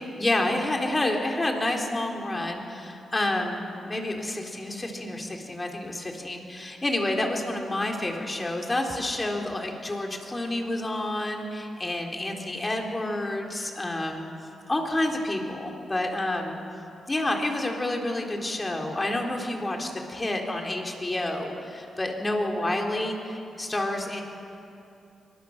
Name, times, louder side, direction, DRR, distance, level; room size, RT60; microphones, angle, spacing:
voice 1, 0.0-14.3 14.7-16.6 17.1-24.2, left 1 dB, 25° left, 2 dB, 3.7 m, -29 dB
24.5 x 20.0 x 6.6 m, 2.7 s
cardioid pair, 70°, 0 cm